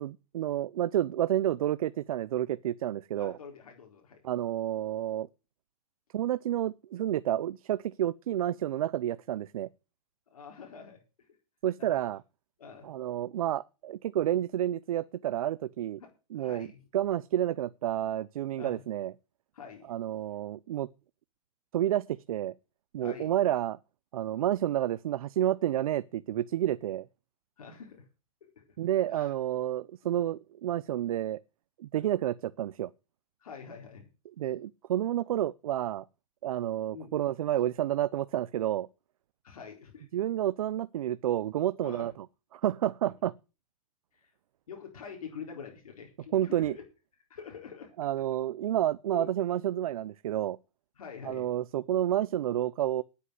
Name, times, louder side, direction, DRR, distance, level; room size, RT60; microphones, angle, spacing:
voice 1, 0.0-3.3 4.2-5.3 6.1-9.7 11.6-12.2 12.8-16.0 16.3-16.7 16.9-19.1 19.9-20.9 21.7-22.5 22.9-23.8 24.1-27.1 28.8-31.4 31.8-32.9 34.4-36.0 36.4-38.9 40.1-42.1 42.5-43.3 46.3-46.8 48.0-50.6 51.3-53.0, right 12 dB, 80° right, 0.6 m, -30 dB
voice 2, 3.2-4.2 10.3-11.0 11.3-11.4 11.8-11.9 12.6-12.9 16.0-16.1 16.3-16.8 18.6-18.8 19.5-19.9 23.0-23.3 27.6-28.1 28.4-28.6 29.1-29.3 31.9-32.1 33.4-34.1 36.9-37.1 39.4-40.1 41.8-42.1 43.0-43.1 44.1-44.3 44.7-46.8 47.3-48.1 49.1-49.3 51.0-51.5, left 6 dB, 90° left, 4.2 m, -46 dB
9.9 x 8.3 x 8.0 m
hypercardioid pair, 135°, 18 cm